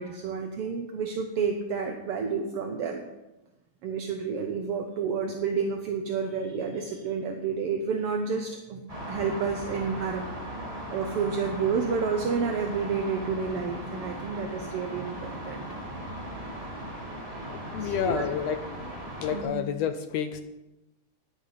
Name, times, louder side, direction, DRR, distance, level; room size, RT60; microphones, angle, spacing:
voice 1, 0.0-3.1 3.8-8.8 9.1-10.4 10.9-15.6 17.8-18.2 19.3-19.6, right 5 dB, 65° right, 4 dB, 1.5 m, -30 dB
sound 1, 8.9-19.4, equal, 10° right, 2.4 m, -38 dB
voice 2, 17.5-18.6 18.9-19.0 19.2-20.4, left 8 dB, 75° left, 9 dB, 1.6 m, -29 dB
14.0 x 10.0 x 5.1 m, 1.0 s
omnidirectional pair, 3.6 m